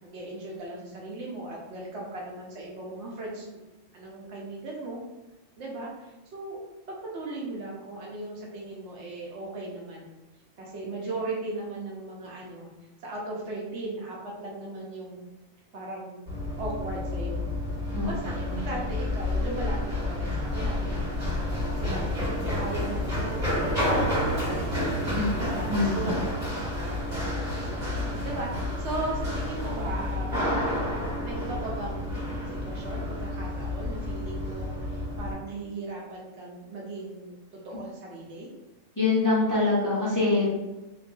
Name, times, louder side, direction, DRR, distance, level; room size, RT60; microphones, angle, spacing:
voice 1, 0.0-3.6 3.9-5.0 5.6-6.6 6.9-10.1 10.6-12.7 13.0-15.2 15.7-16.2 16.6-17.4 18.0-24.7 25.4-26.2 26.6-30.4 31.2-37.4 37.6-38.5, right 2 dB, 75° right, -3 dB, 1.0 m, -37 dB
Run, 16.3-35.3, left 1 dB, 40° right, 1.6 m, -30 dB
voice 2, 25.1-26.1 28.1-28.2 39.0-40.5, left 3 dB, 20° left, -9 dB, 0.7 m, -25 dB
3.0 x 2.6 x 2.3 m, 1.1 s
omnidirectional pair, 1.2 m